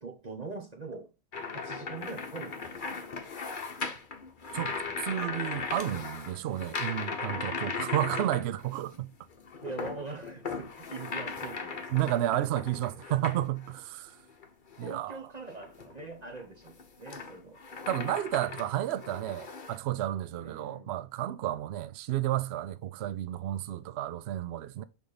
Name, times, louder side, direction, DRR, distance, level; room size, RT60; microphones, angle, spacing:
voice 1, 0.0-1.1 1.5-3.0 4.6-5.4 8.9-9.0 9.6-11.9 12.3-12.7 13.0-13.2 14.8-17.6 20.4-21.0, right 3 dB, 35° right, 0.7 m, -43 dB
sound 1, 1.3-9.0 9.3-13.8 14.3-14.9 15.5-19.8, left 4 dB, 40° left, 0.8 m, -38 dB
voice 2, 4.5-9.1 11.9-14.1 14.8-15.2 17.9-24.8, right 13 dB, 85° right, 0.5 m, -32 dB
6.1 x 3.6 x 5.0 m
omnidirectional pair, 1.7 m